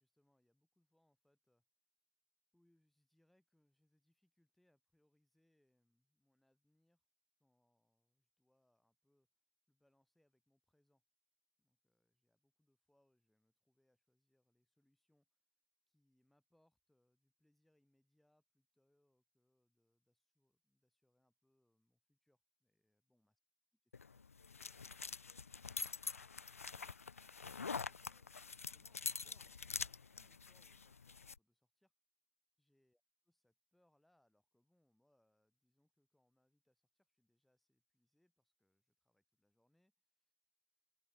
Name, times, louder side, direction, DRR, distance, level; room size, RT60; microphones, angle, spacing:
voice 1, 0.0-1.6 2.5-7.0 7.4-9.3 9.7-11.0 11.6-15.4 15.9-23.4 27.4-31.9 32.6-40.3, left 1 dB, ahead, 5.8 m, -80 dB
sound 1, 23.9-31.4, left 5 dB, 90° left, 0.5 m, -46 dB
open air
hypercardioid pair, 130°, 7 cm